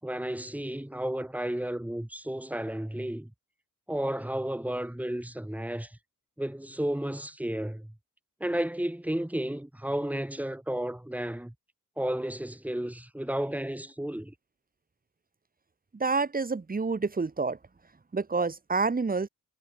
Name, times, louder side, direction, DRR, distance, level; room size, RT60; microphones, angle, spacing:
voice 1, 0.0-3.3 3.9-6.0 6.4-7.9 8.4-11.5 12.0-14.3, right 1 dB, 5° right, 6.9 m, -32 dB
voice 2, 15.9-17.6 18.1-19.3, right 4 dB, 25° right, 4.8 m, -28 dB
cardioid pair, 130°, 34 cm